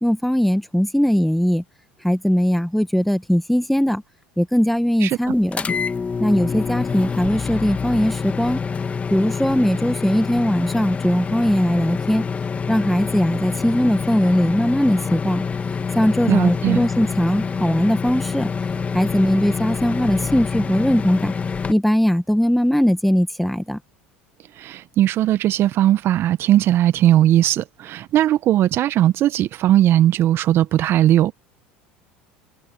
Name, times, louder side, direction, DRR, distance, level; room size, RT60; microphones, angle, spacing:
voice 1, 0.0-1.6 2.0-4.0 4.4-5.7 6.2-8.6 9.1-12.2 12.7-15.4 16.0-18.5 18.9-21.3 21.7-23.8, equal, ahead, 2.1 m, -19 dB
sound 1, 5.5-21.7, left 5 dB, 25° left, 2.3 m, -26 dB
voice 2, 16.3-16.9 24.6-31.3, right 12 dB, 50° right, 1.6 m, -18 dB
hypercardioid pair, 75°, 5 cm